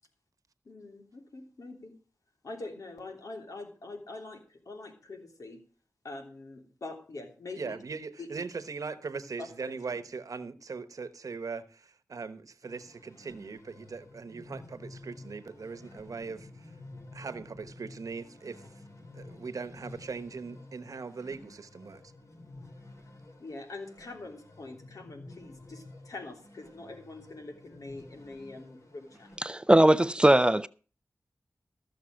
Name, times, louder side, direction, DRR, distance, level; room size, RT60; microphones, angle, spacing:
voice 1, 0.6-1.9 2.4-5.6 6.0-7.8 8.2-8.3 9.4-9.5 23.4-29.3, left 2 dB, 75° left, 3.1 m, -44 dB
voice 2, 7.6-16.7 17.1-18.8 19.1-22.0, right 4 dB, 75° right, 1.0 m, -40 dB
sound 1, 12.6-29.4, left 2 dB, 60° left, 3.1 m, -51 dB
voice 3, 29.4-30.7, right 1 dB, 15° right, 0.5 m, -20 dB
14.5 x 6.7 x 6.3 m
wide cardioid pair, 60°, 6 cm